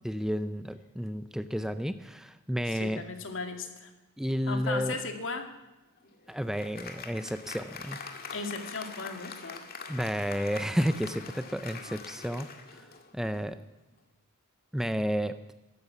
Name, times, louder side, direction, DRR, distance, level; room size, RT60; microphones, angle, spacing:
voice 1, 0.0-3.0 4.2-5.0 6.3-8.0 9.9-12.5 13.1-13.6 14.7-15.5, equal, ahead, 11 dB, 0.5 m, -31 dB
voice 2, 2.6-3.9 4.5-5.5 8.3-9.6, left 4 dB, 60° left, 5 dB, 2.2 m, -36 dB
Applause, 6.0-13.5, left 5 dB, 45° left, 1.9 m, -44 dB
14.0 x 12.5 x 8.2 m, 1.0 s
head